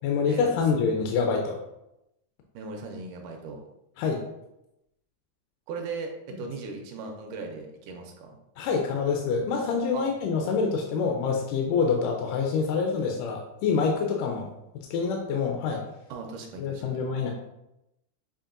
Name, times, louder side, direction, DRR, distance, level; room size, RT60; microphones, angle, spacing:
voice 1, 0.0-1.6 4.0-4.2 8.6-14.5 14.9-15.8 16.6-17.3, left 5 dB, 85° left, 1 dB, 2.1 m, -26 dB
voice 2, 2.5-3.6 5.7-8.4 9.9-10.1 16.1-17.0, right 4 dB, 80° right, 2 dB, 1.9 m, -38 dB
7.0 x 2.8 x 2.5 m, 0.87 s
omnidirectional pair, 3.8 m